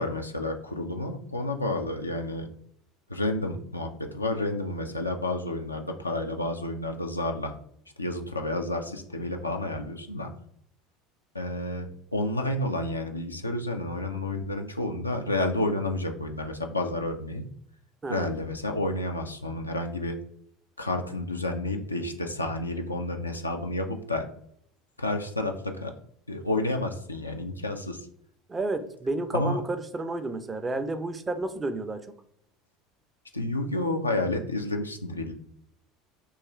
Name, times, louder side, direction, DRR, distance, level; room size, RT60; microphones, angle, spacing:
voice 1, 0.0-2.5 3.1-7.5 8.0-10.3 11.3-17.4 18.1-20.2 20.8-24.3 25.0-25.9 26.3-28.1 29.3-29.6 33.3-35.3, left 2 dB, 85° left, 3 dB, 0.3 m, -30 dB
voice 2, 28.5-32.0, right 2 dB, 20° right, 9 dB, 0.4 m, -31 dB
2.9 x 2.3 x 4.2 m, 0.68 s
figure-of-eight pair, 70°, 0 cm